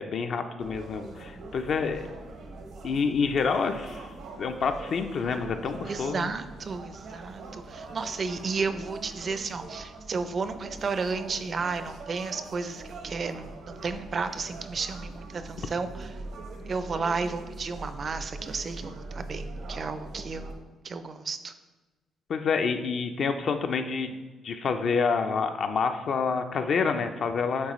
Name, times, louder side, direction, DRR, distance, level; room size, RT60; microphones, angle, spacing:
voice 1, 0.0-2.1 2.8-4.1 4.4-6.3 22.3-24.2 24.4-27.7, left 5 dB, 60° left, 6 dB, 0.4 m, -28 dB
sound 1, 0.6-20.5, right 2 dB, 70° right, 0.9 m, -42 dB
voice 2, 5.9-16.1 16.7-21.5, right 4 dB, 45° right, 10 dB, 0.5 m, -33 dB
8.7 x 4.0 x 3.1 m, 1.2 s
cardioid pair, 90°, 0 cm